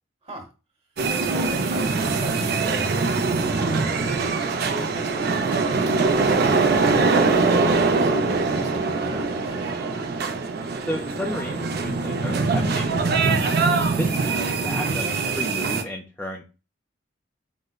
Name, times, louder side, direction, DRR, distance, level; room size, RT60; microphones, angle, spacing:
sound 1, 1.0-15.8, right 4 dB, 55° right, 0.5 m, -22 dB
voice 1, 1.2-9.9 13.9-14.2, right 1 dB, 30° right, 1 dB, 1.0 m, -40 dB
voice 2, 10.9-13.3 14.0-14.1 14.6-16.5, left 1 dB, 10° left, 0 dB, 0.3 m, -33 dB
4.9 x 2.1 x 2.2 m, 0.31 s
head